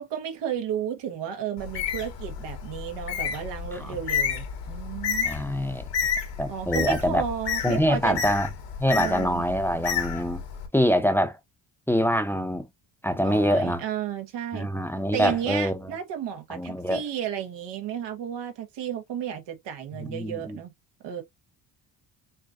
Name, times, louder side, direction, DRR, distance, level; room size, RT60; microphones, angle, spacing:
voice 1, 0.0-5.3 6.5-8.2 8.9-9.4 13.2-14.7 15.1-20.7 21.0-21.2, right 9 dB, 90° right, 1.6 m, -33 dB
Bird, 1.6-10.7, left 7 dB, 85° left, 2.0 m, -31 dB
voice 2, 5.2-5.8 6.4-7.2 7.6-8.5 8.8-10.4 10.7-11.4 11.9-12.7 13.0-13.8 14.5-15.9 16.5-17.0 19.9-20.6, equal, 5° left, 0.7 m, -25 dB
6.5 x 2.8 x 2.5 m
cardioid pair, 115°, 41 cm